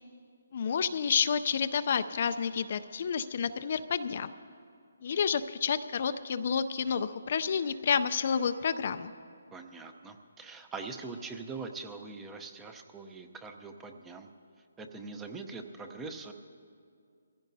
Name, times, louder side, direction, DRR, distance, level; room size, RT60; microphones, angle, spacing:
voice 1, 0.5-4.3 5.0-9.1, left 6 dB, 50° left, 11 dB, 0.5 m, -29 dB
voice 2, 9.5-14.3 14.8-16.3, right 4 dB, 10° right, 5 dB, 0.7 m, -42 dB
23.0 x 15.5 x 2.7 m, 2.3 s
hypercardioid pair, 155°, 0 cm